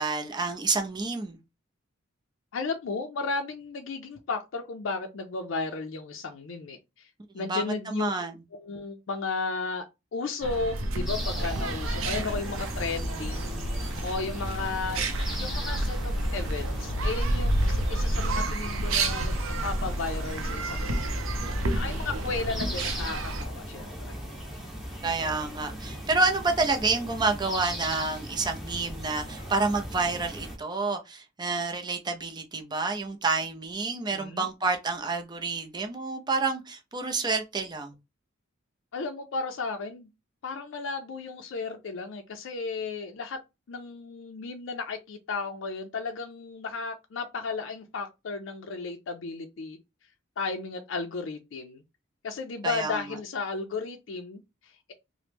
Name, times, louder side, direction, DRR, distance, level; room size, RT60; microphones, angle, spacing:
voice 1, 0.0-1.4 7.4-8.3 25.0-37.9 52.6-53.0, right 3 dB, 20° right, 0.5 m, -29 dB
voice 2, 2.5-7.1 7.3-8.1 8.5-9.9 10.1-13.5 14.0-15.0 15.4-19.3 19.6-21.2 21.7-24.2 34.1-34.5 38.9-40.1 40.4-43.4 43.7-49.8 50.4-51.8 52.2-54.9, left 4 dB, 65° left, 0.4 m, -34 dB
sound 1, 10.4-23.5, right 1 dB, 85° right, 0.5 m, -30 dB
sound 2, 11.1-30.6, equal, ahead, 0.8 m, -38 dB
3.0 x 2.1 x 3.3 m
head